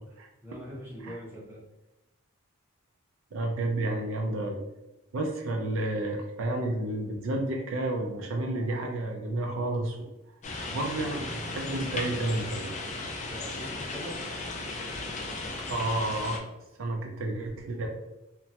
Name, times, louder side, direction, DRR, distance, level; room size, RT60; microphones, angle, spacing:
voice 1, 0.4-1.6 13.3-14.2, equal, 10° right, -6 dB, 0.7 m, -42 dB
voice 2, 3.3-4.6 5.1-10.0 10.7-12.7 15.7-16.5 16.8-17.9, right 2 dB, 60° right, 1 dB, 0.4 m, -31 dB
sound 1, 10.4-16.4, left 2 dB, 30° left, 0.3 m, -36 dB
3.1 x 2.1 x 2.7 m, 0.96 s
head